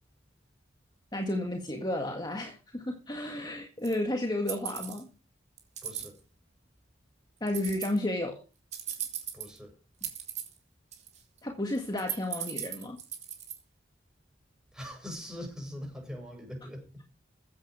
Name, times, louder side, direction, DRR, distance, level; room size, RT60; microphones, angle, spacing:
voice 1, 1.1-5.1 7.4-8.4 11.4-13.0, left 1 dB, 25° left, 1.8 m, -32 dB
sound 1, 3.8-3.9 4.5-5.0 5.6-6.1 7.5-8.0 8.7-9.6 10.0-10.6 10.9-11.4 11.7-13.6, right 9 dB, 40° right, 3.8 m, -37 dB
voice 2, 5.8-6.2 9.3-9.7 14.7-17.1, equal, 5° right, 7.4 m, -42 dB
15.5 x 9.1 x 4.9 m
head